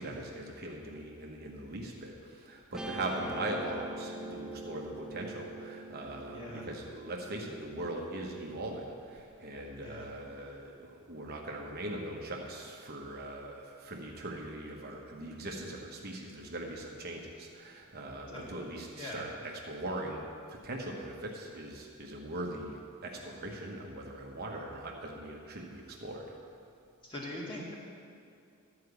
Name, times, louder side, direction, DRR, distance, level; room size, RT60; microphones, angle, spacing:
voice 1, 0.0-26.3, right 1 dB, 45° right, 0 dB, 1.0 m, -40 dB
Guitar, 2.7-9.2, right 1 dB, 5° right, 0.6 m, -44 dB
voice 2, 6.3-6.7 9.8-10.0 18.3-19.2 27.0-27.8, left 1 dB, 20° left, -5 dB, 2.1 m, -42 dB
11.5 x 4.9 x 8.0 m, 2.5 s
head